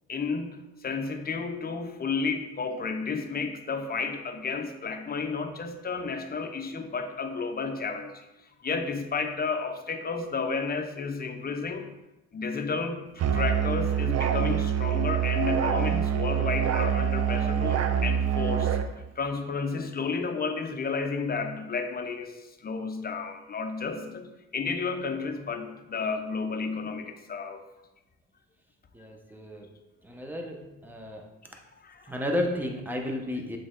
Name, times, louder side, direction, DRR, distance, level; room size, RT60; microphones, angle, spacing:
voice 1, 0.1-8.3 8.6-11.9 12.3-13.1 13.3-18.8 19.2-27.6 31.5-32.1, left 4 dB, 30° left, 6 dB, 0.7 m, -32 dB
Musical instrument, 13.2-18.9, right 9 dB, 55° right, 0.5 m, -26 dB
voice 2, 28.9-29.7 30.0-31.3 32.1-33.6, left 1 dB, 5° right, 2 dB, 1.0 m, -32 dB
7.6 x 3.5 x 3.8 m, 0.98 s
cardioid pair, 90°, 30 cm